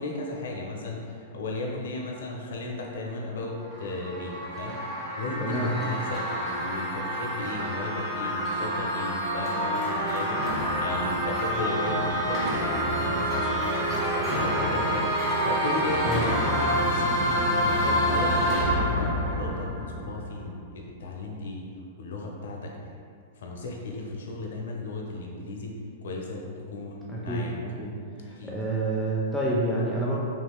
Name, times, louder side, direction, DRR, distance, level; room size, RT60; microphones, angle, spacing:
voice 1, 0.0-4.8 5.2-21.7 22.0-22.7 23.4-25.8 26.0-27.5 28.2-28.5, left 2 dB, 75° left, 0 dB, 0.5 m, -35 dB
sound 1, 3.5-20.4, equal, 20° right, 1.0 m, -27 dB
voice 2, 5.4-5.7 16.0-16.2 27.1-27.4 27.8-27.9 28.2-30.2, right 1 dB, 5° left, -6 dB, 0.4 m, -28 dB
3.0 x 2.8 x 2.2 m, 2.2 s
hypercardioid pair, 115°, 0 cm